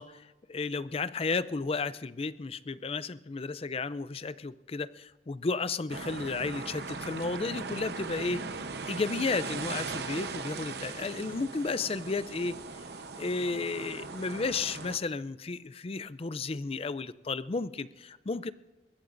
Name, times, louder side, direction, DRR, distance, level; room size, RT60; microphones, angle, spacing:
voice 1, 0.0-8.4 8.9-12.6 13.2-18.5, left 4 dB, 35° left, 16 dB, 0.4 m, -33 dB
sound 1, 5.9-15.0, right 4 dB, 65° right, 0.9 m, -39 dB
21.5 x 20.5 x 2.6 m, 1.2 s
head